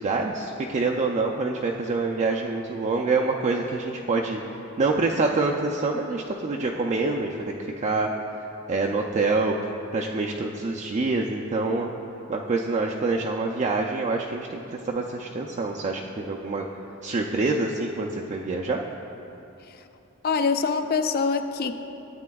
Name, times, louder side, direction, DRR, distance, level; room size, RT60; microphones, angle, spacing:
voice 1, 0.0-4.4 4.8-8.1 8.7-9.5 9.9-11.9 12.3-16.7 17.0-18.8, right 3 dB, 35° right, -1 dB, 0.4 m, -26 dB
voice 2, 20.2-21.7, left 5 dB, 45° left, 9 dB, 0.4 m, -24 dB
13.0 x 8.3 x 2.3 m, 2.9 s
head